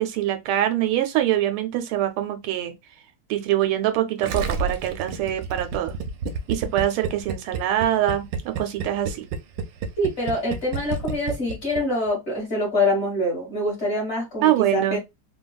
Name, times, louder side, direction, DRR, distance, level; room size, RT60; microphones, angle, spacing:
voice 1, 0.0-2.7 3.3-5.9 6.5-9.2 14.4-15.0, right 12 dB, 90° right, 1.5 m, -24 dB
Gurgling, 4.2-12.1, right 5 dB, 75° right, 1.1 m, -29 dB
voice 2, 10.0-15.0, left 1 dB, 35° left, 1.4 m, -25 dB
3.4 x 2.2 x 2.3 m
omnidirectional pair, 2.3 m